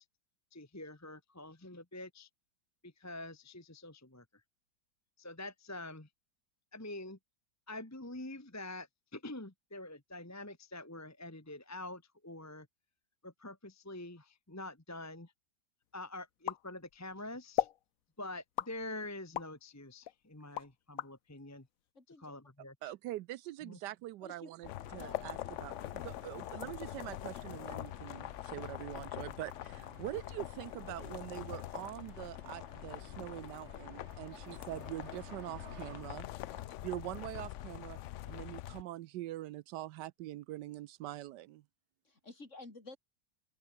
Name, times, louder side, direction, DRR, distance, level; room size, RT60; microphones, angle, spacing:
voice 1, 0.5-2.3 2.8-4.2 5.2-6.1 6.7-7.2 7.7-12.7 13.2-15.3 15.9-17.7 18.2-21.7 22.2-22.9 23.6-23.8, left 2 dB, 10° left, 1.3 m, -46 dB
sound 1, 16.5-17.1 17.6-17.8 18.6-19.6 20.0-21.1, left 11 dB, 60° left, 1.0 m, -36 dB
voice 2, 21.9-22.3 24.2-24.5 25.0-25.4 34.3-34.4 36.5-36.6 42.0-43.0, left 2 dB, 40° left, 4.2 m, -52 dB
voice 3, 22.8-36.3 36.8-38.0 38.3-41.6, right 15 dB, 80° right, 1.2 m, -44 dB
sound 2, 24.6-38.8, left 13 dB, 80° left, 0.6 m, -44 dB
sound 3, 24.8-36.0, right 3 dB, 40° right, 3.6 m, -58 dB
open air
omnidirectional pair, 1.9 m